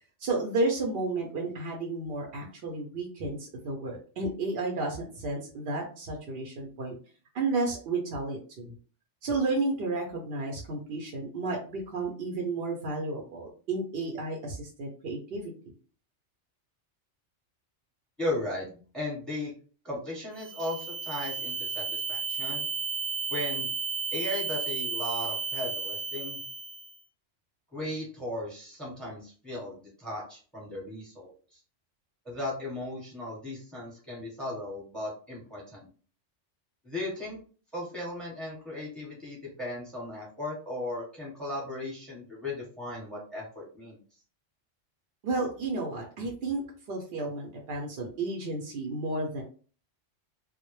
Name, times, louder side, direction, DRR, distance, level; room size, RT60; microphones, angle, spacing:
voice 1, 0.2-7.0 7.3-8.7 9.2-15.4 45.2-46.6 46.9-49.4, right 3 dB, 60° right, 0 dB, 0.7 m, -32 dB
voice 2, 18.2-19.5 19.8-22.6 23.3-23.7 24.1-26.4 27.7-31.3 32.2-35.9 36.8-37.4 37.7-44.0, left 1 dB, ahead, -4 dB, 0.9 m, -36 dB
sound 1, 20.4-27.0, right 5 dB, 85° right, 1.0 m, -33 dB
2.1 x 2.0 x 3.0 m, 0.39 s
omnidirectional pair, 1.2 m